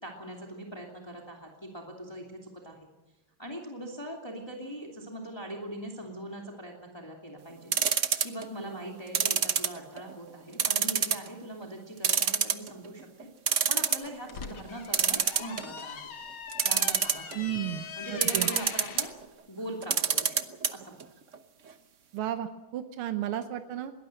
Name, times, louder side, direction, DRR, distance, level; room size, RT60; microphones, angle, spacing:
voice 1, 0.0-2.9 3.4-7.7 8.2-13.3 13.7-16.0 16.6-17.3 18.0-19.1 19.5-20.4 20.7-21.1, right 1 dB, 10° left, 0 dB, 2.6 m, -41 dB
sound 1, 7.7-8.4 9.1-10.1 10.6-11.3 11.6-11.7 12.0-12.9 13.2-13.3 13.5-14.1 14.9-15.8 16.5-17.3 18.2-19.1 19.8-20.7 21.0-21.1 21.3-21.4, right 7 dB, 45° right, 1.0 m, -25 dB
sound 2, 14.0-19.1, left 6 dB, 75° left, 2.3 m, -42 dB
voice 2, 17.3-18.5 22.1-23.9, right 12 dB, 85° right, 8 dB, 1.8 m, -33 dB
22.0 x 18.5 x 7.7 m, 1.1 s
omnidirectional pair, 2.3 m